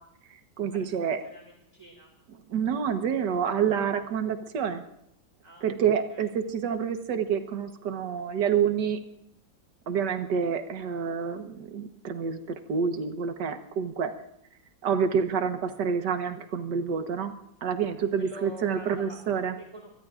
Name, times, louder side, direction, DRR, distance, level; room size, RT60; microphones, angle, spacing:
voice 1, 0.6-1.2 2.5-4.8 5.6-9.0 9.9-12.4 12.7-14.1 14.8-17.3 17.6-19.5, right 7 dB, 65° right, 7 dB, 1.8 m, -28 dB
voice 2, 1.2-2.1 5.4-5.7 6.1-6.2 18.2-19.2 19.6-19.9, right 1 dB, 15° right, 1 dB, 2.4 m, -45 dB
26.5 x 19.0 x 2.5 m, 0.79 s
omnidirectional pair, 2.0 m